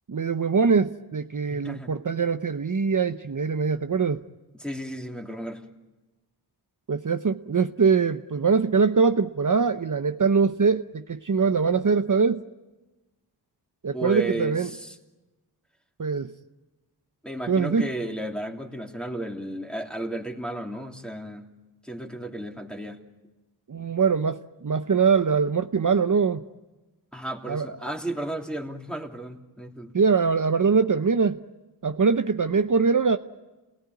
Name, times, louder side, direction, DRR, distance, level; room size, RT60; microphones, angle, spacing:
voice 1, 0.1-4.2 6.9-12.4 13.8-14.7 16.0-16.3 17.5-17.9 23.7-26.4 27.5-27.7 29.9-31.4 31.8-33.2, right 5 dB, 50° right, 8 dB, 0.8 m, -23 dB
voice 2, 1.5-1.9 4.6-5.7 13.9-15.0 17.2-21.4 21.8-23.0 27.1-29.9, right 1 dB, ahead, 2 dB, 3.0 m, -33 dB
28.0 x 18.0 x 9.5 m, 1.1 s
wide cardioid pair, 50°, 41 cm